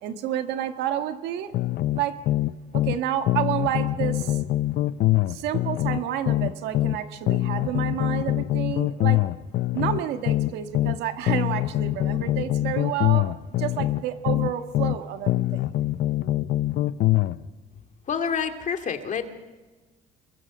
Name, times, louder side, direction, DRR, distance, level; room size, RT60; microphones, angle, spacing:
voice 1, 0.0-1.5 1.9-2.2 2.7-4.4 5.3-9.2 9.7-15.6, right 11 dB, 85° right, 8 dB, 1.7 m, -30 dB
sound 1, 1.5-3.0 3.3-7.0 7.3-11.0 11.3-15.0 15.3-17.4, left 15 dB, 70° left, 0.8 m, -24 dB
voice 2, 18.0-19.3, left 6 dB, 45° left, 6 dB, 2.5 m, -28 dB
27.0 x 22.5 x 6.2 m, 1.3 s
cardioid pair, 110°, 17 cm